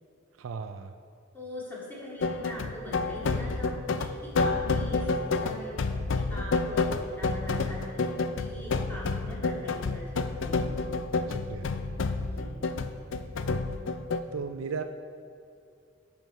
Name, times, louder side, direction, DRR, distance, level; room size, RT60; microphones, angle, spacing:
voice 1, 0.4-0.9 11.3-11.7 14.3-14.8, right 5 dB, 85° right, 8 dB, 0.4 m, -36 dB
voice 2, 1.3-5.8 6.1-10.6 12.3-12.5, equal, 10° left, -6 dB, 2.4 m, -42 dB
sound 1, 2.2-14.2, left 3 dB, 65° left, 0.5 m, -29 dB
9.2 x 7.2 x 5.5 m, 2.5 s
head